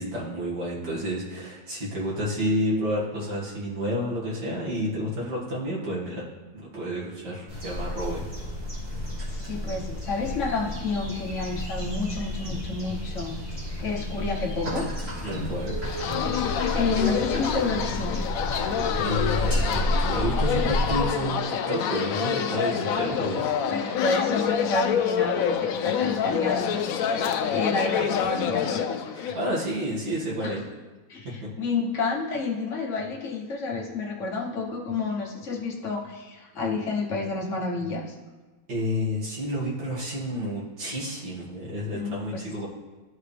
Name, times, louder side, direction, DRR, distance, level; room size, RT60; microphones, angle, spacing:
voice 1, 0.0-6.2 6.5-8.2 15.2-15.8 18.6-23.4 29.1-30.6 38.7-42.7, equal, 70° right, -7 dB, 2.7 m, -30 dB
sound 1, 7.5-21.1, left 1 dB, 35° right, 2.6 m, -31 dB
voice 2, 9.3-14.9 16.7-18.2 22.8-23.0 23.7-27.2 27.5-28.9 30.4-30.6 31.1-38.0 41.9-42.4, left 3 dB, 45° left, -1 dB, 1.3 m, -30 dB
sound 2, 15.8-29.5, left 8 dB, 70° left, 0.8 m, -27 dB
sound 3, 19.5-21.5, equal, 10° right, 1.8 m, -43 dB
13.0 x 4.7 x 3.4 m, 1.3 s
omnidirectional pair, 1.9 m